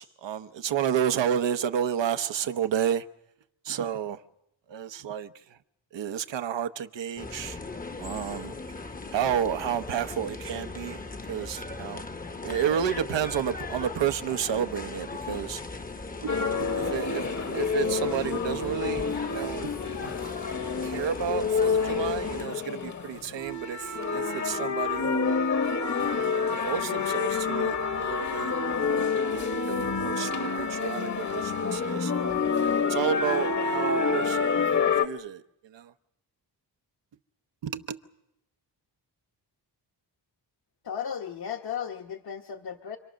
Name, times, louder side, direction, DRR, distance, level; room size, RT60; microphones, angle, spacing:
voice 1, 0.0-3.0 3.6-4.2 4.7-5.6 5.9-7.6 8.0-8.5 9.1-11.0 11.3-12.0 12.4-15.6 16.2-20.1 20.8-25.4 25.9-32.4 32.9-35.9 37.6-38.0, right 9 dB, 85° right, 1.0 m, -31 dB
sound 1, 7.2-22.5, left 3 dB, 20° left, 0.8 m, -38 dB
sound 2, 16.3-35.1, left 5 dB, 40° left, 1.1 m, -28 dB
voice 2, 40.8-43.0, left 8 dB, 60° left, 1.2 m, -35 dB
28.5 x 24.0 x 6.4 m
wide cardioid pair, 125°, 42 cm